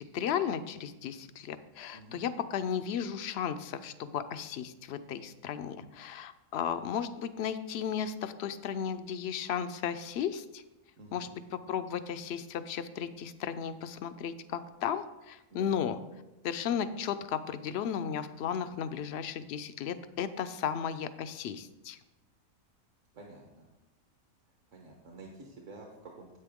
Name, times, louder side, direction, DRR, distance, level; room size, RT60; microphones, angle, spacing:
voice 1, 0.0-10.6 11.1-11.4 11.7-16.0 16.4-22.0, left 8 dB, 65° left, 11 dB, 0.6 m, -35 dB
voice 2, 1.9-2.2 11.0-11.3 15.5-15.8 23.1-23.7 24.7-26.4, right 2 dB, 60° right, 0 dB, 1.5 m, -50 dB
9.8 x 8.2 x 3.6 m, 1.0 s
omnidirectional pair, 1.5 m